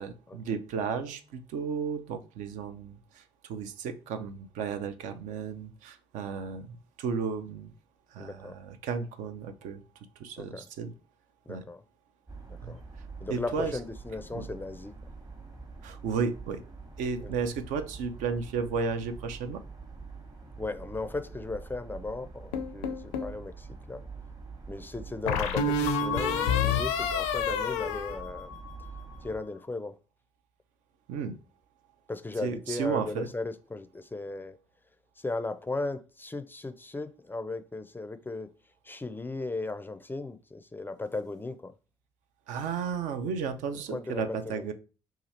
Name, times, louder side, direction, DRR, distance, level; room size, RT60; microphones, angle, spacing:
voice 1, 0.0-7.7 8.1-9.8 10.2-10.9 11.5-11.6 12.6-12.8 13.3-13.8 14.3-14.5 15.8-16.6 17.0-19.6 31.1-31.4 32.4-33.3 42.5-44.7, right 5 dB, 65° right, 0.5 m, -33 dB
voice 2, 8.2-8.6 10.4-10.7 11.5-11.8 12.5-12.8 13.2-15.0 17.2-17.3 20.6-24.0 24.7-28.6 29.2-30.0 32.1-34.6 35.2-38.5 38.8-41.7 43.9-44.7, left 3 dB, 15° left, 0.4 m, -36 dB
sound 1, 12.3-29.4, right 4 dB, 30° right, 1.0 m, -45 dB
sound 2, 22.5-23.4 25.3-28.9, left 5 dB, 80° left, 0.5 m, -29 dB
2.8 x 2.4 x 4.1 m
hypercardioid pair, 50°, 14 cm